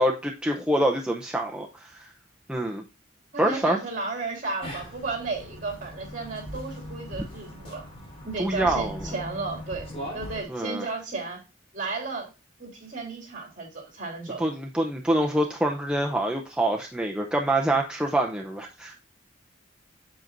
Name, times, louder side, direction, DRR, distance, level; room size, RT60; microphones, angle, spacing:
voice 1, 0.0-1.9 2.5-2.8 3.4-3.8 8.4-9.0 10.5-10.8 14.4-18.9, right 1 dB, 5° right, 1 dB, 0.6 m, -25 dB
voice 2, 3.3-7.8 8.2-11.4 11.7-12.3 12.6-14.4, right 3 dB, 40° right, 1 dB, 3.3 m, -34 dB
sound 1, 4.6-10.4, equal, 30° left, 3.8 m, -39 dB
7.8 x 7.4 x 2.5 m, 0.30 s
head